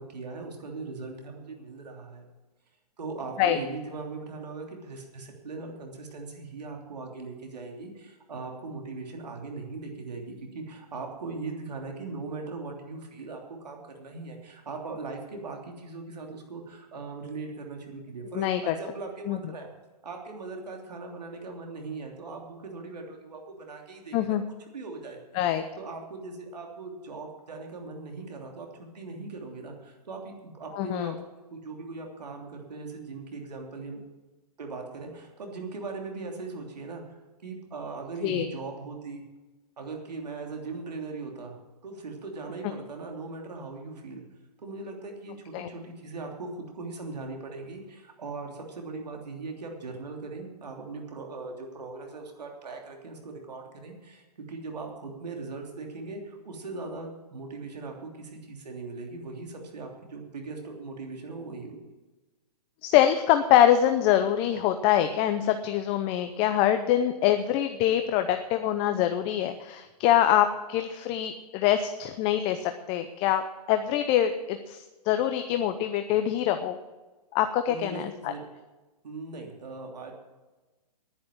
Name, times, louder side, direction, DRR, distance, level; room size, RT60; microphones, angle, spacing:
voice 1, 0.0-2.2 3.0-19.7 20.0-24.4 24.7-25.2 25.4-31.1 31.5-34.0 34.6-39.2 39.8-41.5 41.8-44.2 44.6-61.9 77.7-78.4 79.0-80.1, right 3 dB, 80° right, 1 dB, 3.1 m, -39 dB
voice 2, 18.3-18.7 19.3-19.4 24.1-24.4 25.3-25.6 30.7-31.1 38.2-38.5 45.5-45.7 62.8-76.8 77.3-78.3, left 11 dB, 25° left, 8 dB, 0.7 m, -24 dB
10.5 x 10.0 x 7.5 m, 1.2 s
hypercardioid pair, 135°, 21 cm